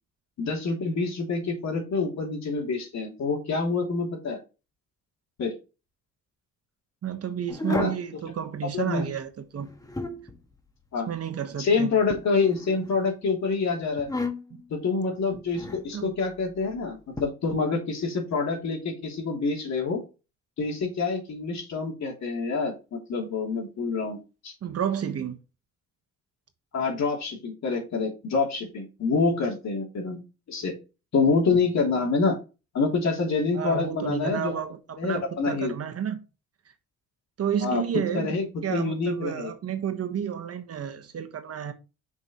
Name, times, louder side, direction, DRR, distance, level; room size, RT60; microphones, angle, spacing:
voice 1, 0.4-4.4 5.4-5.5 7.7-7.9 8.7-9.1 10.9-11.1 11.6-14.1 14.7-20.0 20.6-24.2 24.4-24.5 26.7-30.2 30.5-30.8 31.1-32.4 32.7-34.6 35.0-35.7 37.6-37.8 38.1-38.4 38.7-39.5, left 4 dB, 65° left, 3.0 m, -26 dB
voice 2, 7.0-9.7 11.1-11.9 14.5-14.6 15.9-16.1 24.6-25.4 33.5-36.2 37.4-41.7, right 8 dB, 50° right, 1.3 m, -31 dB
sound 1, 7.5-8.1 9.6-10.4 12.1-13.0 14.0-14.6 15.5-15.9 17.2-17.3, left 2 dB, 10° left, 1.3 m, -33 dB
6.4 x 5.5 x 3.0 m
cardioid pair, 90°, 30 cm